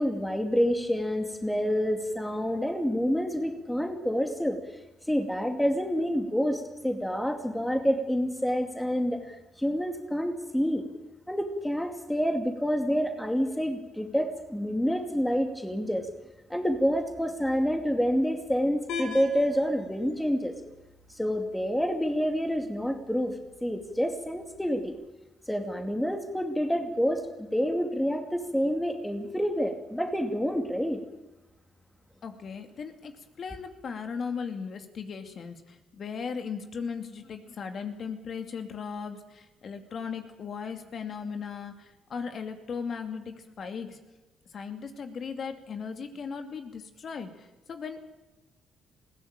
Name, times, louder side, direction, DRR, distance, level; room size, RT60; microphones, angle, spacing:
voice 1, 0.0-4.6 5.1-10.8 11.3-16.1 16.5-20.5 21.1-23.3 23.6-24.9 25.5-31.0, equal, 5° left, 4 dB, 2.4 m, -28 dB
sound 1, 18.9-24.9, left 5 dB, 85° left, 4.5 m, -44 dB
voice 2, 32.2-33.1 33.4-44.0 44.5-48.0, left 6 dB, 55° left, 6 dB, 2.5 m, -37 dB
21.0 x 16.5 x 8.9 m, 1.0 s
cardioid pair, 90°, 0 cm